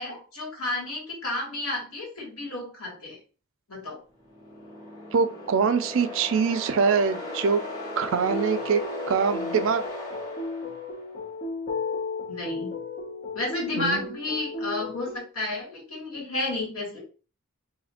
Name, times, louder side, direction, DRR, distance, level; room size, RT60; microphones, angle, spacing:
voice 1, 0.0-3.2 3.7-4.0 12.3-12.7 13.3-17.0, left 2 dB, 80° left, -2 dB, 1.7 m, -32 dB
sound 1, 4.2-11.2, left 1 dB, 20° left, 0.9 m, -37 dB
voice 2, 5.1-7.6 8.0-8.8 9.1-9.8 13.8-14.1, right 5 dB, 60° right, 11 dB, 0.4 m, -24 dB
sound 2, 8.2-15.2, left 3 dB, 45° left, 0.9 m, -34 dB
2.6 x 2.4 x 4.2 m, 0.35 s
head